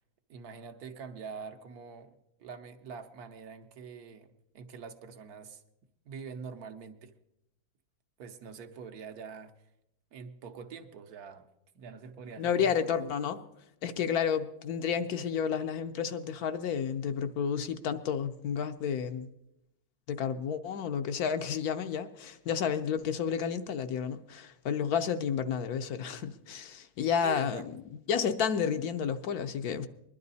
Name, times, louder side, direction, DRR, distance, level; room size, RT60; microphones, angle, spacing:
voice 1, 0.3-5.6 6.0-7.1 8.2-9.5 10.1-11.5 11.7-12.7 27.2-27.7, right 6 dB, 75° right, 1.4 m, -45 dB
voice 2, 12.4-13.4 13.8-19.3 20.1-27.6 28.1-29.9, left 7 dB, 70° left, 1.2 m, -31 dB
21.0 x 11.5 x 4.1 m
omnidirectional pair, 1.7 m